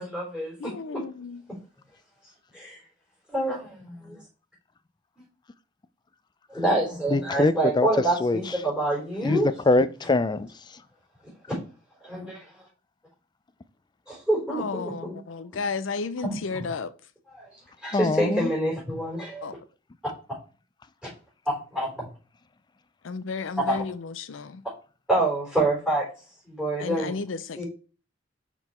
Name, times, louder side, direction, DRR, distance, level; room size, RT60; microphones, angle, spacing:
voice 1, 0.0-1.0 2.5-2.8 3.3-4.2 6.5-9.5 11.5-11.6 12.0-12.4 14.1-15.2 16.2-16.3 17.4-17.5 17.8-19.5 21.5-22.1 23.6-23.8 25.1-26.1 26.5-27.1 27.6-27.7, right 1 dB, ahead, 4.0 m, -27 dB
voice 2, 0.6-1.4 14.5-16.9 19.4-19.6 23.0-24.6 26.8-27.6, left 4 dB, 90° left, 0.5 m, -33 dB
voice 3, 7.1-7.9 8.2-8.6 9.2-10.8 17.9-18.5, left 2 dB, 25° left, 0.4 m, -24 dB
5.8 x 4.7 x 4.3 m
head